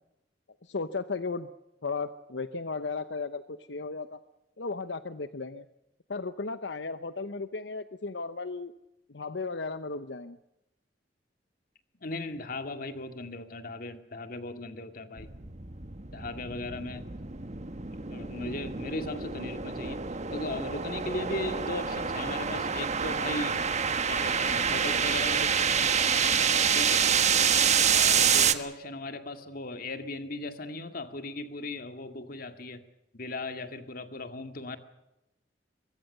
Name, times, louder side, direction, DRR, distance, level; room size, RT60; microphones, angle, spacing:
voice 1, 0.6-1.5 1.8-4.2 4.6-5.7 6.1-8.7 9.1-10.4, left 4 dB, 85° left, 12 dB, 0.9 m, -35 dB
voice 2, 12.0-15.3 16.1-17.0 18.1-20.0 20.3-23.6 24.0-26.0 26.7-27.1 27.9-32.8 33.1-34.8, left 2 dB, 55° left, 8 dB, 2.2 m, -37 dB
sound 1, 15.2-28.5, right 7 dB, 40° right, 1.4 m, -27 dB
23.5 x 23.0 x 6.8 m, 0.91 s
head